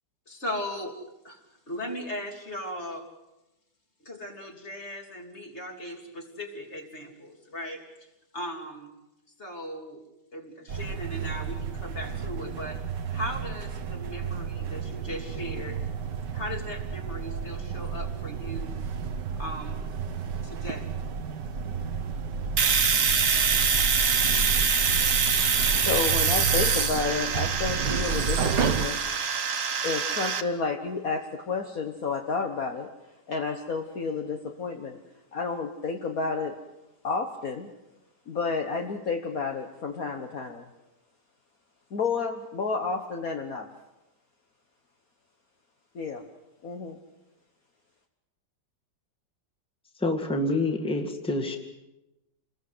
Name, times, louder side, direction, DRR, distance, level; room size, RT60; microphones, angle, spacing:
voice 1, 0.3-1.0 1.2-1.4 1.7-3.1 4.0-7.8 8.3-8.9 9.4-10.0 10.3-12.8 13.1-15.9 16.3-18.8 19.4-19.8 20.4-20.9, equal, 35° left, 3 dB, 3.3 m, -37 dB
sound 1, 10.7-28.9, right 6 dB, 75° right, 1.9 m, -32 dB
Domestic sounds home sounds, 22.6-30.4, right 6 dB, 50° right, 1.6 m, -25 dB
voice 2, 25.3-29.0 29.8-32.9 33.3-35.0 35.3-36.5 37.0-37.7 38.3-40.7 41.9-43.7 45.9-46.2 46.6-47.0, left 4 dB, 55° left, 3 dB, 1.8 m, -31 dB
voice 3, 50.0-51.6, left 2 dB, 5° left, 3 dB, 2.0 m, -27 dB
28.0 x 20.5 x 8.0 m, 0.96 s
omnidirectional pair, 1.9 m